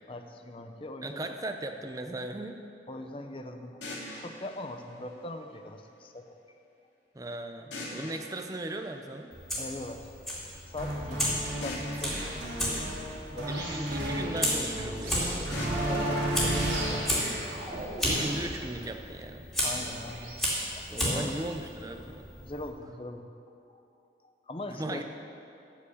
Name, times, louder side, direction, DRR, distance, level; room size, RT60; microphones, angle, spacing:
voice 1, 0.1-1.4 2.9-3.8 4.2-6.4 9.6-10.1 10.7-12.4 13.3-13.8 15.6-17.5 19.6-20.4 20.8-21.4 22.4-23.3 23.7-23.8 24.2-25.0, left 2 dB, 30° left, 6 dB, 0.6 m, -41 dB
voice 2, 1.0-2.6 7.1-9.3 13.4-16.1 18.0-19.4 20.9-22.3 24.7-25.0, right 1 dB, 20° right, 5 dB, 0.6 m, -38 dB
sound 1, 3.8-5.8 7.7-9.7 11.6-13.8 15.5-17.5, left 1 dB, 85° left, 2.8 m, -44 dB
Fire, 9.3-22.7, equal, ahead, 2.6 m, -34 dB
sound 2, 10.8-20.5, right 1 dB, 80° right, 3.1 m, -33 dB
13.0 x 5.2 x 8.2 m, 2.6 s
head